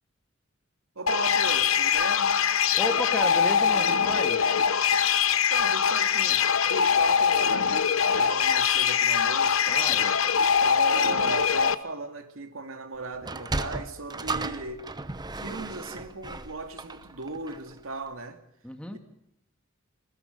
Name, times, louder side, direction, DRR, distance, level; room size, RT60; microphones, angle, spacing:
voice 1, 1.0-2.4 5.5-10.1 10.6-14.8 15.3-18.4 18.9-19.0, right 3 dB, 80° right, 2.6 m, -37 dB
sound 1, 1.1-11.7, left 7 dB, 85° left, 1.0 m, -23 dB
voice 2, 2.8-4.4 9.7-10.1 18.6-19.0, left 1 dB, 5° left, 1.9 m, -33 dB
Sliding door, 13.1-17.8, right 2 dB, 20° right, 0.9 m, -35 dB
27.0 x 21.0 x 5.4 m
head